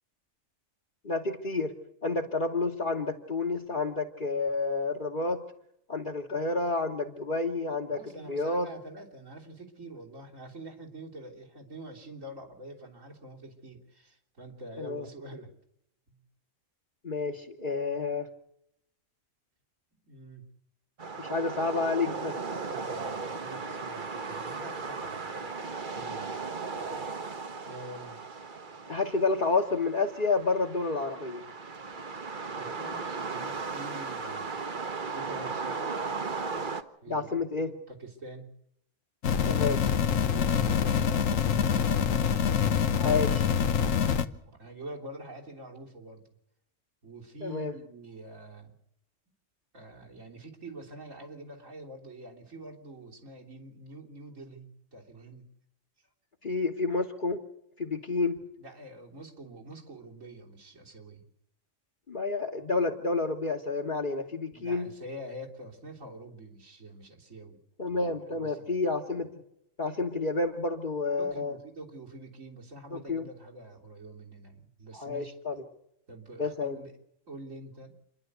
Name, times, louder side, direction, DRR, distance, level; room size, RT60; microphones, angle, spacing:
voice 1, 1.0-1.7 2.0-5.4 5.9-8.7 14.8-15.1 17.0-18.3 21.2-22.4 28.9-31.4 37.1-37.7 39.5-39.8 42.9-43.5 47.4-47.7 56.4-57.4 57.8-58.4 62.1-64.9 67.8-69.3 69.8-71.6 72.9-73.3 74.9-75.7 76.4-76.8, left 3 dB, 40° left, 4 dB, 1.7 m, -30 dB
voice 2, 7.8-15.5 16.1-16.2 20.0-20.4 22.7-25.5 25.9-26.4 27.6-28.2 32.5-34.6 35.1-35.8 37.0-37.3 37.6-38.5 40.2-42.2 43.7-46.3 47.0-48.7 49.7-55.5 58.6-61.2 64.5-67.6 68.3-68.7 71.2-75.3 76.1-76.9 77.3-77.9, right 1 dB, 80° right, 0 dB, 3.7 m, -46 dB
sound 1, 21.0-36.8, right 4 dB, 40° right, 1.3 m, -36 dB
sound 2, 39.2-44.2, left 7 dB, 80° left, 1.4 m, -25 dB
28.5 x 11.5 x 8.2 m, 0.81 s
omnidirectional pair, 1.3 m